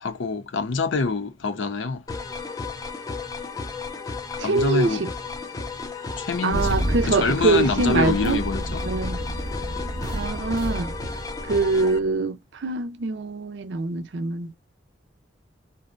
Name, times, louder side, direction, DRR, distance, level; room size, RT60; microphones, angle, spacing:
voice 1, 0.0-2.0 4.4-5.0 6.2-6.8 7.0-8.8, left 4 dB, 80° left, 0.5 m, -25 dB
sound 1, 2.1-12.0, left 3 dB, 20° left, 0.3 m, -34 dB
voice 2, 4.4-5.1 6.4-8.4 8.8-9.2 10.1-10.9 11.4-14.5, right 3 dB, 65° right, 0.5 m, -24 dB
Engine starting, 6.5-12.0, equal, 20° right, 0.6 m, -30 dB
2.5 x 2.0 x 2.4 m
head